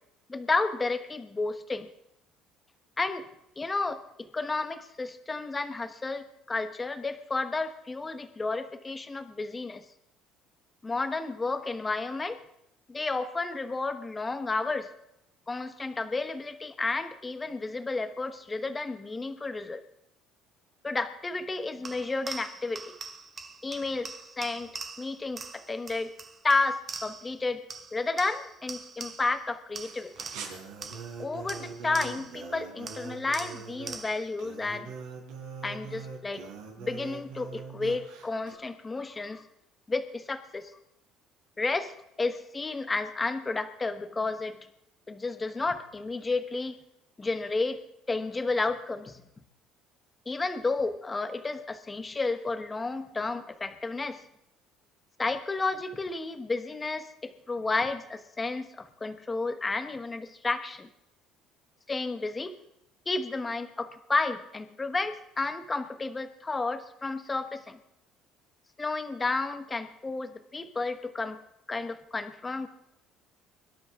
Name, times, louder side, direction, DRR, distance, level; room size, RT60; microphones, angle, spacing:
voice 1, 0.3-1.9 3.0-3.3 3.6-4.0 4.3-9.8 10.8-12.4 12.9-14.9 15.5-19.8 20.8-22.9 23.6-24.7 25.0-26.1 26.4-27.6 27.9-30.1 31.2-34.9 35.6-36.4 36.8-39.4 39.9-40.7 41.6-44.6 45.1-46.8 47.2-47.8 48.1-49.2 50.3-54.2 55.2-60.9 61.9-62.6 63.1-67.8 68.8-71.4 71.7-72.7, left 3 dB, 15° left, 9 dB, 1.2 m, -31 dB
sound 1, 21.8-27.4 27.7-29.4 29.8-32.4 32.9-34.4, right 4 dB, 25° right, 1.3 m, -43 dB
sound 2, 29.8-38.5, right 5 dB, 90° right, 4.3 m, -43 dB
23.5 x 12.5 x 3.7 m, 0.80 s
cardioid pair, 140°, 0 cm